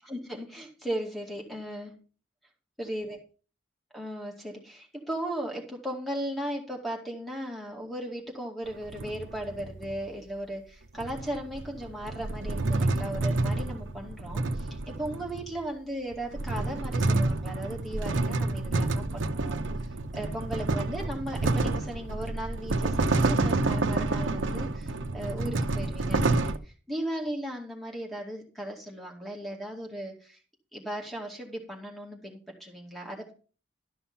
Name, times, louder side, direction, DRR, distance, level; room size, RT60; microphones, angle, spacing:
voice 1, 0.1-2.0 2.8-3.2 3.9-30.4 30.7-33.3, right 1 dB, ahead, 0 dB, 2.2 m, -37 dB
sound 1, 8.7-10.0 11.0-15.6 16.1-26.6, right 2 dB, 75° right, 0.7 m, -29 dB
12.5 x 5.7 x 5.5 m, 0.37 s
head